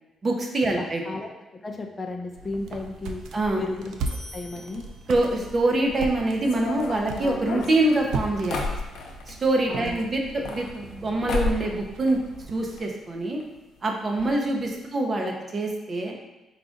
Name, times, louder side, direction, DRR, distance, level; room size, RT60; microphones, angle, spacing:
voice 1, 0.2-1.0 3.3-3.6 5.1-8.7 9.3-12.2 12.5-13.4 13.8-16.1, right 2 dB, 35° right, 1 dB, 0.8 m, -25 dB
voice 2, 0.8-1.3 1.6-3.2 3.6-4.9 9.7-10.1, left 3 dB, 25° left, 2 dB, 0.4 m, -34 dB
sound 1, 2.3-12.9, right 3 dB, 80° right, 0.4 m, -38 dB
sound 2, 4.1-5.7, left 1 dB, 10° right, 1.1 m, -46 dB
sound 3, 6.4-9.4 10.2-11.0 11.3-11.7 12.0-12.8 13.1-13.2 13.4-13.5 14.2-14.3 14.6-14.8, left 3 dB, 75° left, 0.7 m, -31 dB
4.7 x 2.5 x 3.8 m, 1.1 s
cardioid pair, 90°, 0 cm